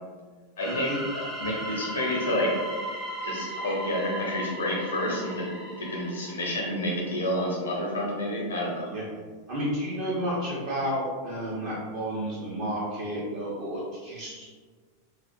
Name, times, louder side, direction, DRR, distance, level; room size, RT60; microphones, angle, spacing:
voice 1, 0.6-0.9 1.4-2.6 3.2-8.9, left 1 dB, 70° left, -2 dB, 0.6 m, -29 dB
sound 1, 0.6-7.2, right 1 dB, 5° left, 0.5 m, -37 dB
voice 2, 9.5-14.5, equal, 50° right, -8 dB, 0.5 m, -31 dB
2.3 x 2.0 x 2.6 m, 1.5 s
figure-of-eight pair, 90°, 0 cm